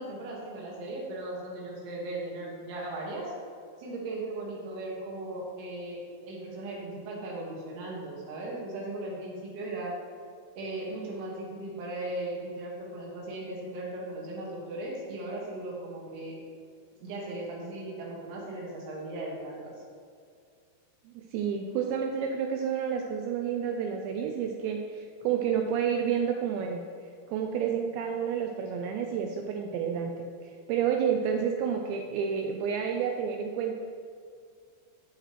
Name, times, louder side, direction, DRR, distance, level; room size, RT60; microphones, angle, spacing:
voice 1, 0.0-3.3 3.8-6.0 6.2-9.9 10.6-16.3 17.0-19.7, right 2 dB, 70° right, -3 dB, 3.9 m, -37 dB
voice 2, 21.2-26.8 27.3-33.7, right 7 dB, 85° right, 3 dB, 2.5 m, -30 dB
14.5 x 6.7 x 3.1 m, 2.2 s
omnidirectional pair, 5.7 m